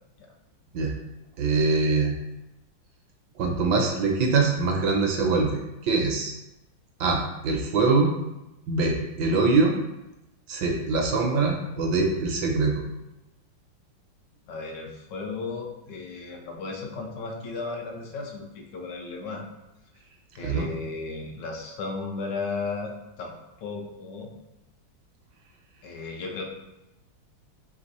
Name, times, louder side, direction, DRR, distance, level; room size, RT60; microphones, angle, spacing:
voice 1, 1.4-2.2 3.4-6.3 7.0-8.1 8.7-9.7 10.5-12.8 20.4-20.7, right 3 dB, 70° right, 2 dB, 1.1 m, -23 dB
voice 2, 14.5-19.4 20.3-23.3 23.6-24.3 25.8-26.4, left 4 dB, 75° left, 1 dB, 1.3 m, -35 dB
3.5 x 3.2 x 4.0 m, 0.96 s
omnidirectional pair, 2.1 m